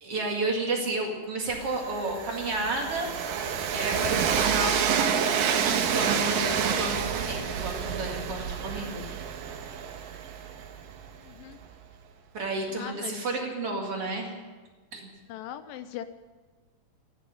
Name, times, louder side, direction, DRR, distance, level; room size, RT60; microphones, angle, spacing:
voice 1, 0.0-3.1 3.7-9.1 12.3-14.3 14.9-15.1, right 2 dB, 45° right, 0 dB, 2.7 m, -32 dB
Train, 1.5-11.3, right 7 dB, 75° right, 2.8 m, -28 dB
voice 2, 11.2-11.6 12.7-13.3 15.3-16.1, left 11 dB, 80° left, 11 dB, 2.2 m, -40 dB
14.5 x 11.5 x 8.6 m, 1.3 s
omnidirectional pair, 4.1 m